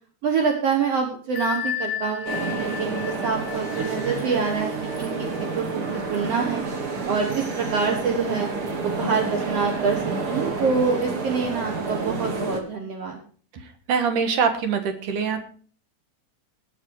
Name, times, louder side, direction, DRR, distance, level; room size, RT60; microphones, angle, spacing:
voice 1, 0.2-6.6 7.1-8.5 8.8-10.0 10.3-13.2, right 5 dB, 60° right, 2 dB, 2.2 m, -26 dB
Bell, 1.4-6.8, left 9 dB, 60° left, 1.4 m, -34 dB
sound 1, 2.2-12.6, right 4 dB, 40° right, 1.8 m, -29 dB
voice 2, 13.9-15.5, right 6 dB, 85° right, 7 dB, 3.1 m, -23 dB
19.5 x 6.8 x 4.7 m, 0.43 s
omnidirectional pair, 3.5 m